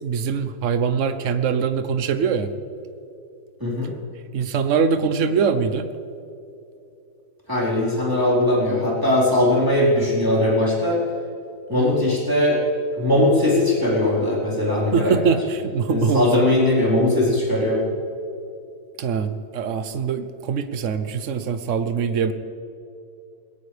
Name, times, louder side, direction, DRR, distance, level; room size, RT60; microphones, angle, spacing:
voice 1, 0.0-2.5 4.3-5.9 11.7-12.0 14.9-16.4 19.0-22.3, right 6 dB, 50° right, 9 dB, 1.0 m, -23 dB
voice 2, 3.6-3.9 7.5-11.0 11.7-12.6 12.9-15.3 15.9-17.8, left 1 dB, 10° right, -6 dB, 4.2 m, -20 dB
20.5 x 17.5 x 3.4 m, 2.7 s
omnidirectional pair, 2.2 m